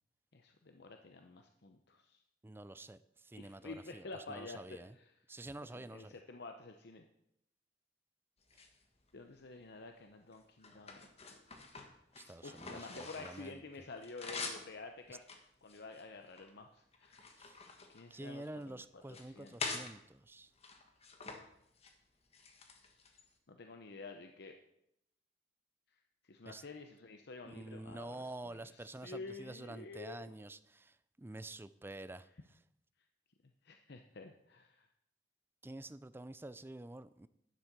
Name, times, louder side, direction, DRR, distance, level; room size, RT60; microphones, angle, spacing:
voice 1, 0.3-2.2 3.3-5.2 5.6-7.0 9.1-11.3 12.4-15.2 15.6-17.4 17.9-19.8 23.5-24.6 25.9-30.3 33.4-34.9, left 3 dB, 60° left, 5 dB, 0.8 m, -50 dB
voice 2, 2.4-4.9 5.3-6.2 8.5-8.6 12.1-13.6 15.1-15.2 17.4-17.6 18.1-20.5 26.5-26.6 27.4-32.3 35.6-37.3, right 2 dB, 10° right, 14 dB, 0.4 m, -48 dB
sound 1, 8.4-9.4 10.0-13.5 13.8-14.7 15.2-16.5 16.9-18.6 19.0-19.9 20.6-21.4 21.7-21.9 22.3-23.3, left 4 dB, 35° left, 1.5 m, -46 dB
11.0 x 7.4 x 6.7 m, 0.77 s
head